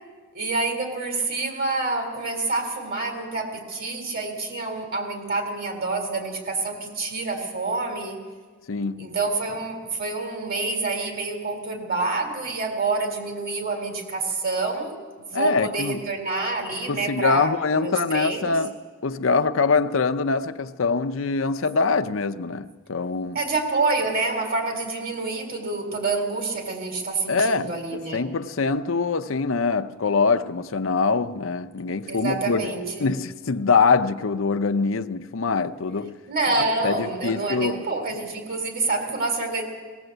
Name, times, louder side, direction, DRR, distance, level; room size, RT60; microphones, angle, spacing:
voice 1, 0.3-8.3 9.0-18.6 23.3-28.2 32.1-33.1 36.3-39.6, right 3 dB, 50° right, 3.9 m, -27 dB
voice 2, 8.7-9.1 15.3-16.0 16.9-18.7 19.0-23.4 27.3-32.7 33.0-36.2 36.5-37.8, left 4 dB, 70° left, 0.7 m, -24 dB
19.5 x 18.0 x 7.9 m
head